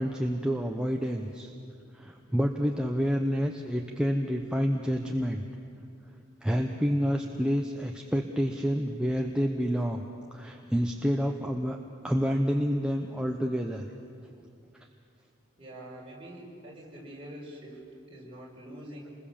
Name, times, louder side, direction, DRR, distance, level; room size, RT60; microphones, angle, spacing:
voice 1, 0.0-1.5 1.9-5.4 6.4-10.0 10.3-11.8 12.0-13.9, equal, 5° right, 2 dB, 0.9 m, -28 dB
voice 2, 15.6-19.2, right 1 dB, 25° right, -4 dB, 5.4 m, -45 dB
27.5 x 21.0 x 7.2 m, 2.5 s
head